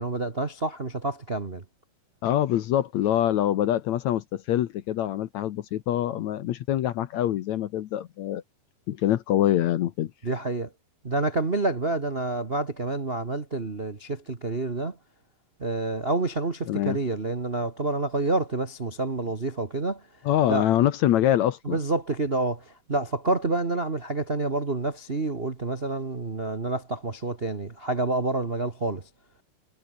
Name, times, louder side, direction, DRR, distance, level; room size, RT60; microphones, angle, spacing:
voice 1, 0.0-1.6 10.2-10.7 11.0-15.0 15.6-20.0 20.5-20.7 21.6-29.0, right 2 dB, 60° right, 0.6 m, -28 dB
voice 2, 2.2-8.4 8.9-10.1 16.7-17.0 20.3-21.8, left 12 dB, 65° left, 2.0 m, -24 dB
omnidirectional pair, 4.0 m